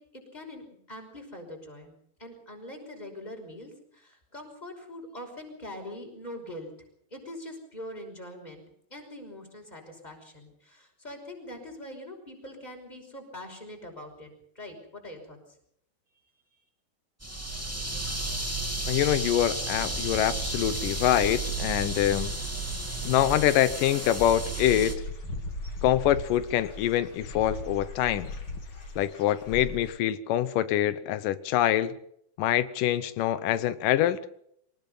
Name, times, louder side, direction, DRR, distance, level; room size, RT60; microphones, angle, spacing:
voice 1, 0.0-1.9 2.2-6.7 7.1-8.6 8.9-14.3 14.6-15.4 16.4-16.5, left 1 dB, 10° left, 3 dB, 5.6 m, -43 dB
sound 1, 17.2-24.9, right 2 dB, 5° right, 2.2 m, -32 dB
voice 2, 18.9-22.3 23.0-25.0 25.8-28.3 29.0-31.9 32.4-34.2, left 12 dB, 90° left, 13 dB, 2.6 m, -25 dB
Dog / Bird, 23.7-29.9, left 2 dB, 40° left, 3.2 m, -39 dB
25.0 x 19.0 x 5.6 m, 0.71 s
omnidirectional pair, 3.7 m